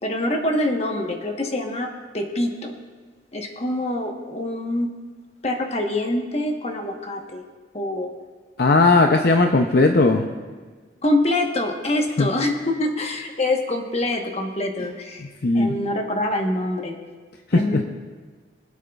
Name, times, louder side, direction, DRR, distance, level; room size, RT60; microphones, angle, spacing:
voice 1, 0.0-2.7 3.3-4.9 5.4-7.4 7.7-8.1 9.0-9.1 11.0-15.3 15.5-17.0 17.5-17.8, left 1 dB, 35° left, 2 dB, 1.2 m, -25 dB
voice 2, 8.6-10.3 12.2-12.3 15.2-15.8 17.5-17.8, left 3 dB, 60° left, 4 dB, 0.6 m, -18 dB
22.5 x 8.2 x 2.4 m, 1.4 s
head